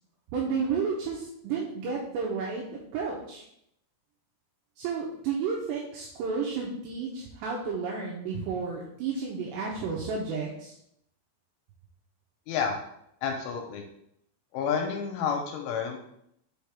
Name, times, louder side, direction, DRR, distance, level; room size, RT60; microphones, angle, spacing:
voice 1, 0.3-3.4 4.8-10.7, right 5 dB, 85° right, -2 dB, 2.6 m, -32 dB
voice 2, 12.5-12.8 13.2-13.8 14.5-16.0, left 6 dB, 80° left, 3 dB, 2.9 m, -30 dB
6.5 x 5.0 x 3.4 m, 0.74 s
omnidirectional pair, 5.9 m